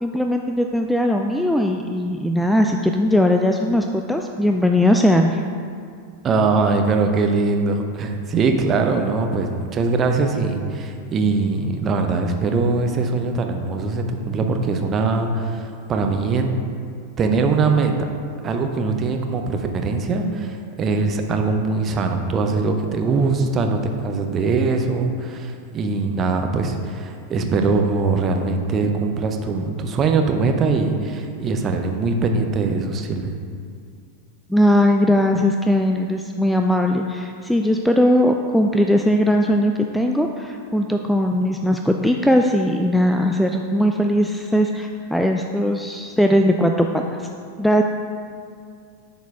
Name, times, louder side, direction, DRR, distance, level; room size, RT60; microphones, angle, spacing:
voice 1, 0.0-5.4 34.5-47.3 47.6-47.8, equal, ahead, 3 dB, 0.3 m, -19 dB
voice 2, 6.2-16.6 17.2-18.1 18.4-33.4, right 4 dB, 25° right, 4 dB, 0.7 m, -22 dB
10.5 x 4.1 x 3.5 m, 2.2 s
figure-of-eight pair, 90°, 0 cm